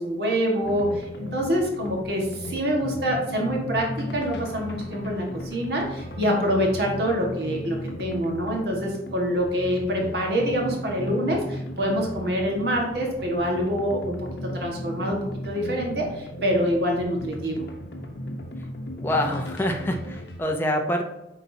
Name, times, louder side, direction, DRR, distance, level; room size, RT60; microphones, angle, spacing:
voice 1, 0.0-17.7, equal, 65° right, 0 dB, 1.5 m, -26 dB
sound 1, 0.6-20.4, equal, 70° left, 0.9 m, -36 dB
voice 2, 19.0-21.1, left 1 dB, 15° left, 3 dB, 0.6 m, -26 dB
8.5 x 4.1 x 2.7 m, 0.93 s
head